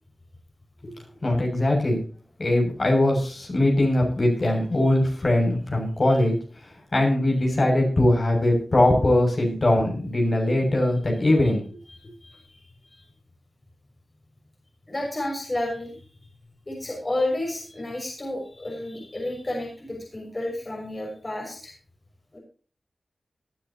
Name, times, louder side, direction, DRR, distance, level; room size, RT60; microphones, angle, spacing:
voice 1, 1.2-2.0 2.4-6.3 6.9-11.6, left 1 dB, 50° left, 0 dB, 7.0 m, -21 dB
voice 2, 11.9-12.6 12.9-13.0 14.9-16.1 16.7-21.7 22.3-22.4, left 1 dB, 35° left, 0 dB, 6.1 m, -31 dB
19.5 x 10.5 x 2.9 m, 0.40 s
cardioid pair, 50°, 0 cm